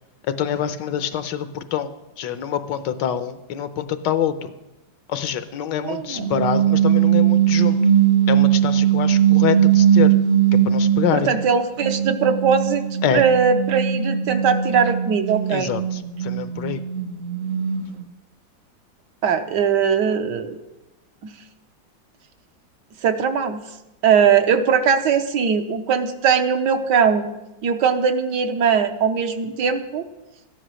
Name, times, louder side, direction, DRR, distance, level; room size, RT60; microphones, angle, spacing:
voice 1, 0.3-1.9 2.2-4.5 5.1-7.8 8.3-10.1 10.5-11.3 13.0-13.2 15.5-16.8, left 9 dB, 75° left, 12 dB, 1.3 m, -25 dB
voice 2, 5.8-6.3 11.1-12.8 13.1-15.7 19.2-20.6 21.2-21.3 23.0-23.6 24.0-27.3 27.6-30.0, right 6 dB, 70° right, 8 dB, 1.4 m, -20 dB
sound 1, 6.2-11.4 11.8-18.0, right 9 dB, 50° right, 1.0 m, -19 dB
13.0 x 10.0 x 6.2 m, 0.98 s
omnidirectional pair, 2.0 m